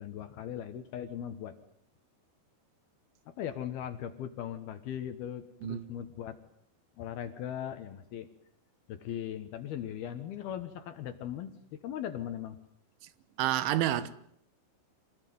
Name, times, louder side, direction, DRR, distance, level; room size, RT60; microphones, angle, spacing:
voice 1, 0.0-1.6 3.3-6.4 7.0-8.3 8.9-12.6, left 10 dB, 65° left, 2.8 m, -39 dB
voice 2, 13.4-14.1, right 13 dB, 80° right, 3.7 m, -28 dB
26.0 x 19.5 x 9.4 m
omnidirectional pair, 5.4 m